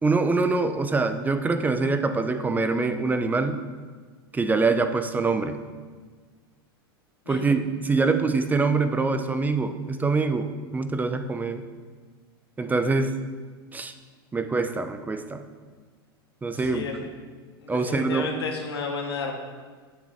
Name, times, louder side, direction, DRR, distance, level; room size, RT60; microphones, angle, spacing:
voice 1, 0.0-3.6 4.3-5.6 7.3-11.7 12.6-13.2 13.7-13.9 14.3-15.4 16.4-16.9 17.7-18.3, right 3 dB, 15° right, 9 dB, 0.7 m, -24 dB
voice 2, 16.5-17.1 17.6-19.3, left 4 dB, 90° left, 1 dB, 1.8 m, -32 dB
7.5 x 7.4 x 5.8 m, 1.5 s
hypercardioid pair, 110°, 13 cm